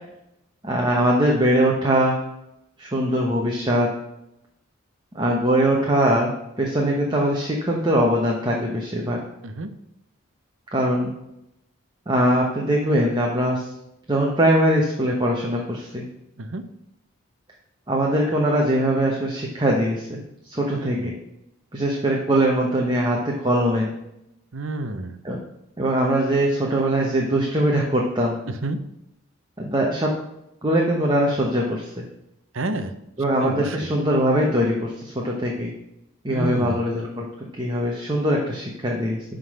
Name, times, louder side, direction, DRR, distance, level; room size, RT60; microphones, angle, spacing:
voice 1, 0.6-2.2 2.8-3.9 5.1-9.2 10.7-11.1 12.1-13.7 14.1-16.0 17.9-21.1 21.7-23.9 25.2-25.4 25.8-28.4 29.6-30.1 30.6-32.0 33.2-35.7 36.2-39.2, right 1 dB, 20° right, -2 dB, 1.1 m, -22 dB
voice 2, 20.7-21.1 24.5-25.2 28.6-28.8 32.5-32.9 33.4-33.9 36.3-36.8, right 2 dB, 70° right, 9 dB, 0.8 m, -29 dB
11.0 x 3.9 x 6.5 m, 0.85 s
head